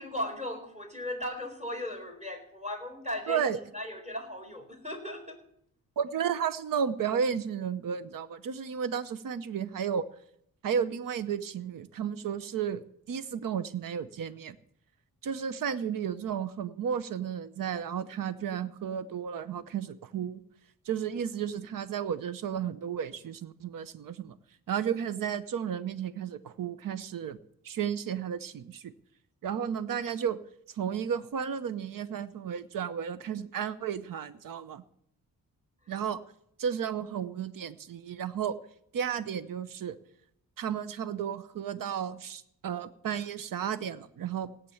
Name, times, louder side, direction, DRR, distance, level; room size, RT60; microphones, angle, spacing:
voice 1, 0.0-3.5 3.7-5.4, left 1 dB, 20° right, 4 dB, 4.3 m, -37 dB
voice 2, 3.3-3.6 6.0-10.0 10.6-14.6 15.2-20.4 20.8-24.3 24.7-27.4 27.6-28.9 29.4-30.4 30.7-34.8 35.9-36.2 36.6-38.6 38.9-40.0 40.6-44.5, right 8 dB, 70° right, 14 dB, 0.9 m, -33 dB
18.0 x 8.4 x 7.1 m, 0.70 s
cardioid pair, 95°, 35 cm